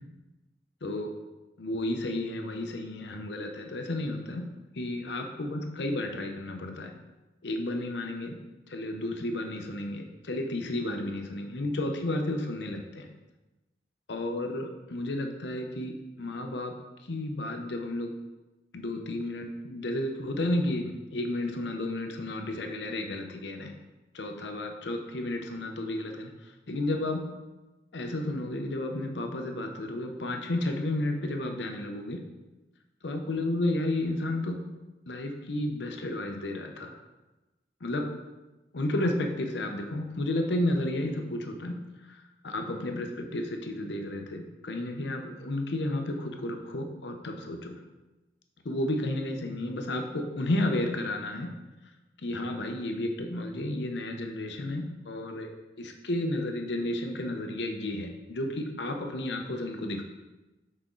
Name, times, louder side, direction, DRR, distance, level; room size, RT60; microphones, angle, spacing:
voice 1, 0.8-1.1 1.6-4.5 4.7-6.9 7.4-8.4 8.7-13.1 14.1-16.7 17.0-18.1 18.7-23.7 24.1-26.3 26.7-27.2 27.9-32.2 33.0-34.6 35.1-36.9 37.8-38.1 38.7-41.8 42.1-47.8 48.6-51.5 52.2-55.5 55.8-60.0, left 1 dB, 80° left, 4 dB, 0.7 m, -32 dB
6.1 x 4.2 x 3.8 m, 1.1 s
head